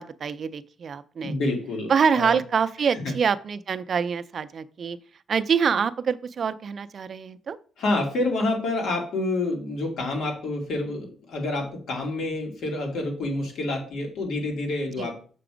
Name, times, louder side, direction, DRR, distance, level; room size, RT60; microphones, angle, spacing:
voice 1, 0.0-1.4 1.9-5.0 5.3-7.6 15.0-15.1, right 6 dB, 40° right, 12 dB, 0.4 m, -25 dB
voice 2, 1.2-2.4 2.9-3.1 7.8-15.2, left 2 dB, 70° left, 2 dB, 2.6 m, -28 dB
6.8 x 5.9 x 5.0 m, 0.41 s
cardioid pair, 155°, 0 cm